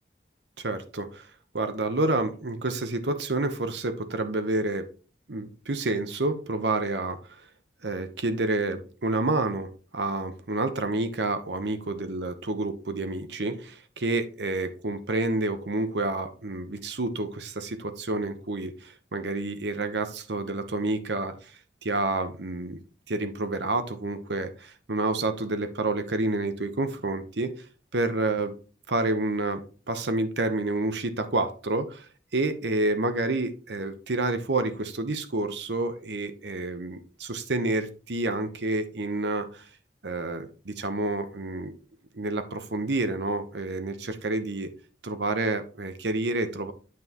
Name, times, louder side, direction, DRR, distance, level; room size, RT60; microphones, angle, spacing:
voice 1, 0.6-1.3 1.5-4.9 5.3-7.2 7.8-21.3 21.8-22.8 23.1-27.5 27.9-28.5 28.9-32.1 32.3-39.6 40.0-41.7 42.1-44.7 45.0-46.7, right 2 dB, 80° right, 9 dB, 1.0 m, -29 dB
9.2 x 6.0 x 3.0 m, 0.36 s
head